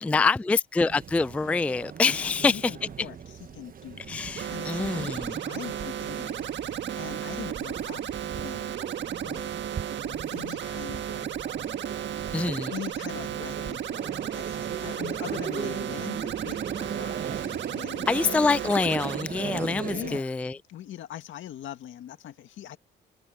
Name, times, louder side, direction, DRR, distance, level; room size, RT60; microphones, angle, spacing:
voice 1, 0.0-2.7 4.1-5.4 12.3-12.7 18.1-20.6, left 4 dB, 5° left, 0.3 m, -25 dB
sound 1, 0.9-20.2, right 7 dB, 45° right, 1.0 m, -39 dB
voice 2, 2.1-6.5 7.0-8.8 9.1-9.7 10.0-11.5 12.7-18.4 19.8-22.8, left 11 dB, 75° left, 1.9 m, -42 dB
sound 2, 4.4-19.2, right 10 dB, 65° right, 1.5 m, -34 dB
cardioid pair, 90°, 20 cm